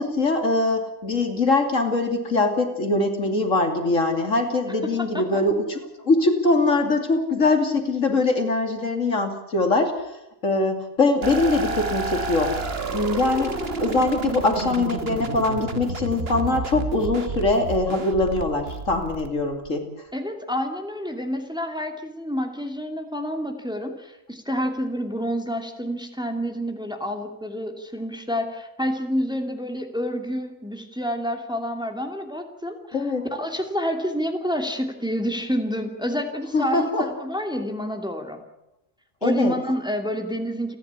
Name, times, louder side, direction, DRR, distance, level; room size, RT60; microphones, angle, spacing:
voice 1, 0.0-10.0 10.4-19.8 32.9-33.3 36.5-37.0 39.2-39.6, left 2 dB, 65° left, 5 dB, 3.1 m, -22 dB
voice 2, 4.8-5.4 20.1-38.4 39.2-40.8, equal, 5° right, 4 dB, 2.7 m, -28 dB
sound 1, 11.2-19.7, right 3 dB, 45° right, 1.7 m, -30 dB
30.0 x 11.0 x 9.8 m, 0.88 s
omnidirectional pair, 1.4 m